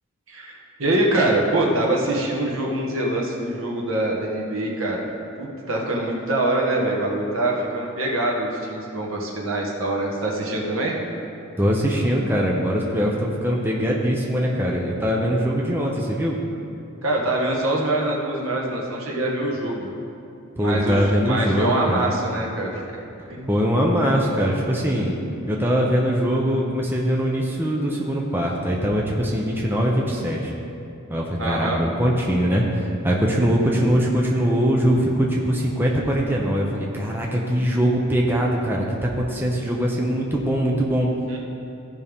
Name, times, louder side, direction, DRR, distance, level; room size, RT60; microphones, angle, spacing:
voice 1, 0.8-5.0 5.4-10.9 17.0-19.9 20.6-22.8 23.3-23.5 31.4-31.8 41.3-41.4, right 1 dB, 65° right, -2 dB, 1.5 m, -24 dB
voice 2, 11.6-16.4 20.6-22.1 23.5-25.1 25.5-30.5 31.1-41.1, equal, 10° right, -2 dB, 0.7 m, -22 dB
15.0 x 5.5 x 3.6 m, 2.6 s
head